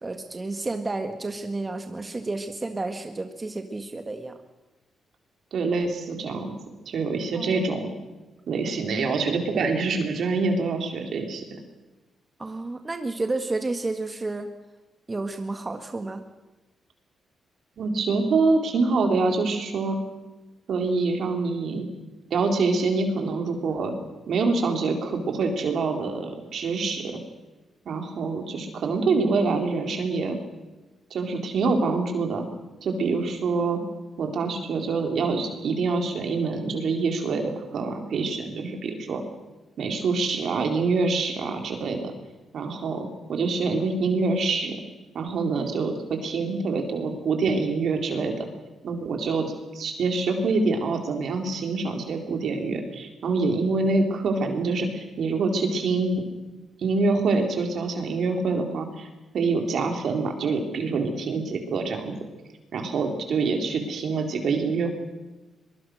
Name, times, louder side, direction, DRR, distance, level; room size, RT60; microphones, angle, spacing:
voice 1, 0.0-4.4 7.3-7.6 12.4-14.5 15.1-16.2 45.5-45.8, right 2 dB, 25° right, 6 dB, 1.8 m, -31 dB
voice 2, 5.5-6.5 6.9-7.9 8.5-11.6 17.8-20.0 20.7-21.9 22.3-23.9 24.3-27.2 27.9-30.4 31.1-32.5 32.8-33.8 34.2-39.2 39.8-42.1 42.5-44.8 45.1-48.3 48.8-49.5 49.7-56.2 56.8-59.1 59.3-62.1 62.7-64.9, right 4 dB, 70° right, 4 dB, 4.2 m, -25 dB
22.5 x 22.5 x 6.5 m, 1.1 s
cardioid pair, 75°, 0 cm